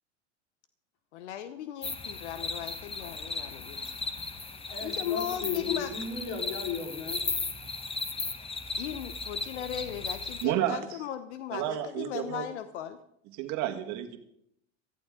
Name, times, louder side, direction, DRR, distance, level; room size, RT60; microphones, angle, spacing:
voice 1, 1.1-3.8 4.4-4.5 4.8-5.9 8.8-13.0, left 10 dB, 70° left, 11 dB, 1.0 m, -37 dB
sound 1, 1.8-10.5, left 3 dB, 15° left, 1.3 m, -36 dB
voice 2, 4.7-7.2, left 6 dB, 55° left, 1 dB, 4.4 m, -35 dB
voice 3, 10.4-10.8 11.5-12.4 13.4-14.2, right 12 dB, 50° right, 6 dB, 1.9 m, -30 dB
17.5 x 14.5 x 3.8 m, 0.73 s
hypercardioid pair, 95°, 36 cm